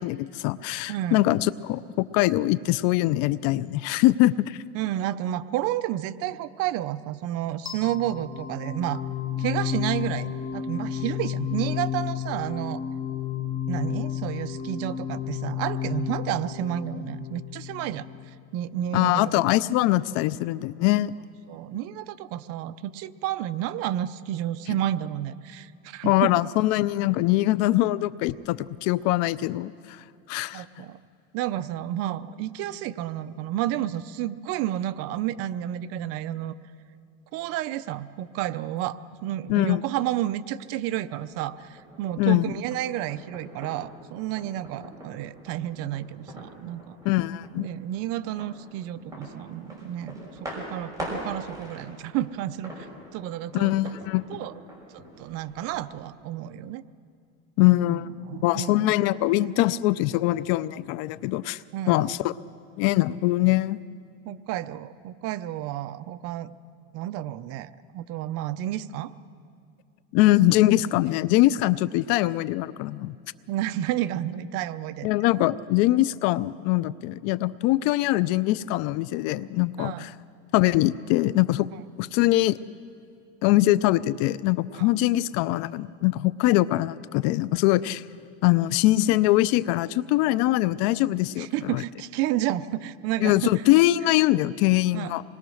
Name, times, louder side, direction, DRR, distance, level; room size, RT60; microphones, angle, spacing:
voice 1, 0.0-4.6 18.9-21.1 26.0-29.7 30.3-30.6 39.5-39.8 42.2-42.5 47.0-47.7 53.5-54.2 57.6-61.6 61.9-62.3 62.8-63.8 70.1-73.1 75.0-80.1 80.5-81.7 82.0-82.6 83.4-88.0 88.4-91.8 93.2-95.2, left 16 dB, 50° left, 18 dB, 0.5 m, -23 dB
voice 2, 0.9-1.2 4.7-9.0 9.4-12.8 13.7-18.1 18.5-19.3 21.5-26.3 30.5-31.0 31.3-36.5 37.3-47.0 47.6-50.3 50.6-52.9 53.1-53.7 54.3-54.5 54.9-56.8 57.9-58.9 61.7-62.0 64.3-66.5 66.9-69.1 73.5-75.1 79.8-80.1 84.7-84.9 91.4-93.6 94.9-95.1, right 13 dB, 50° right, 13 dB, 0.7 m, -31 dB
sound 1, 7.7-18.6, left 9 dB, 15° left, 0.9 m, -32 dB
sound 2, 41.1-55.9, equal, 10° right, 5.9 m, -43 dB
26.5 x 20.5 x 6.4 m, 2.3 s
supercardioid pair, 145°, 32 cm